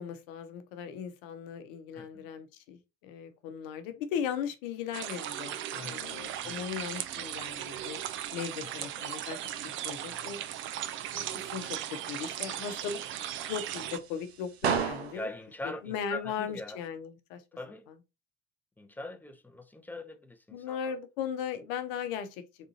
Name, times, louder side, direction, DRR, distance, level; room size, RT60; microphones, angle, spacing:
voice 1, 0.0-8.0 8.3-9.4 9.8-10.4 11.1-13.0 13.5-15.3 15.6-17.4 20.5-22.4, left 7 dB, 60° left, 0.9 m, -37 dB
voice 2, 1.9-2.3 5.8-6.0 6.4-6.6 8.6-9.1 15.1-16.8 17.5-17.9 18.8-20.9, left 2 dB, 5° left, 0.7 m, -42 dB
sound 1, 4.9-14.0, right 11 dB, 40° right, 0.5 m, -37 dB
sound 2, 6.0-16.9, right 6 dB, 80° right, 0.6 m, -41 dB
3.7 x 3.6 x 2.8 m
figure-of-eight pair, 65°, 32 cm